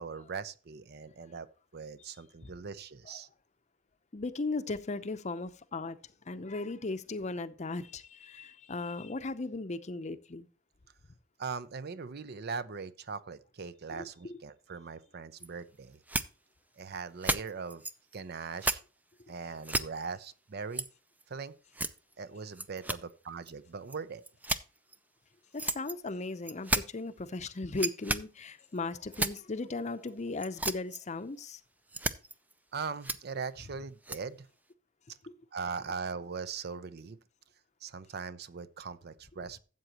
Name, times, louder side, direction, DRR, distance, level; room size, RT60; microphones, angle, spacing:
voice 1, 0.0-1.5 1.7-3.3 11.4-16.0 16.8-17.8 18.1-18.8 19.3-20.9 21.3-21.5 22.2-24.2 32.7-34.5 35.5-37.2 37.8-39.6, right 5 dB, 55° right, 0.6 m, -40 dB
voice 2, 4.1-6.0 6.3-10.5 14.0-14.4 25.5-31.6, left 3 dB, 35° left, 0.7 m, -37 dB
sound 1, 15.4-15.5 16.1-16.2 16.8-16.9 17.2-18.2 18.6-18.8 19.2-19.3 19.6-19.8 20.7-20.9 21.2-21.3 21.7-22.1 22.5-23.1 23.5-23.6 23.9-24.0 24.2-25.0 25.6-26.1 26.4-26.8 27.7-28.2 28.8-29.4 30.1-30.2 30.4-31.0 31.4-31.5 31.9-32.5 33.0-33.2 34.0-34.2, right 2 dB, 10° right, 0.4 m, -32 dB
13.0 x 7.8 x 2.9 m
head